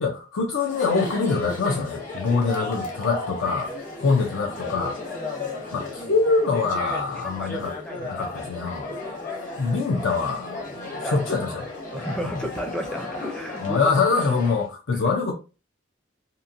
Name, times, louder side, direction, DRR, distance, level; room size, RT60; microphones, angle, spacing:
voice 1, 0.0-3.7 4.0-5.0 5.7-7.7 8.0-8.9 9.6-10.5 11.0-11.7 12.2-12.4 13.6-15.3, left 4 dB, 80° left, 0.5 m, -24 dB
Chatter, 0.5-14.7, left 2 dB, 40° left, 0.8 m, -35 dB
voice 2, 2.1-2.6 4.9-5.2 7.4-8.5 8.8-9.0 10.6-11.3 11.9-14.0 15.0-15.1, equal, 5° left, 0.4 m, -34 dB
2.9 x 2.5 x 2.5 m
head